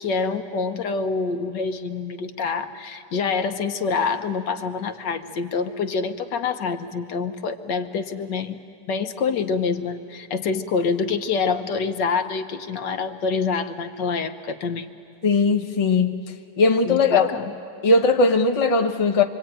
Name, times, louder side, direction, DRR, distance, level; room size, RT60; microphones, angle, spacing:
voice 1, 0.0-8.6 8.9-14.9 16.9-17.5, left 5 dB, 75° left, 7 dB, 1.6 m, -26 dB
voice 2, 15.2-16.2 16.6-17.3 17.8-19.2, left 3 dB, 25° left, 4 dB, 0.9 m, -19 dB
26.0 x 24.0 x 9.0 m, 2.4 s
omnidirectional pair, 1.9 m